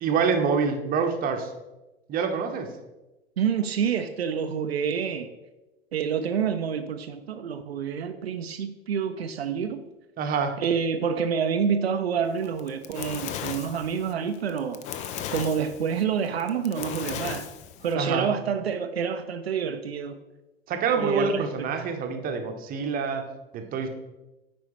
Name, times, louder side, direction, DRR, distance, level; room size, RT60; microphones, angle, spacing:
voice 1, 0.0-1.5 2.1-2.7 10.2-10.6 18.0-18.3 20.7-23.3 23.5-23.9, right 5 dB, 30° right, 5 dB, 0.8 m, -26 dB
voice 2, 3.4-5.3 5.9-9.8 10.6-14.8 15.3-17.5 17.8-20.2 21.0-21.7, right 7 dB, 75° right, 8 dB, 0.5 m, -28 dB
Fire, 12.5-17.9, left 9 dB, 25° left, 0.4 m, -36 dB
9.2 x 4.7 x 3.0 m, 1.0 s
figure-of-eight pair, 85°, 31 cm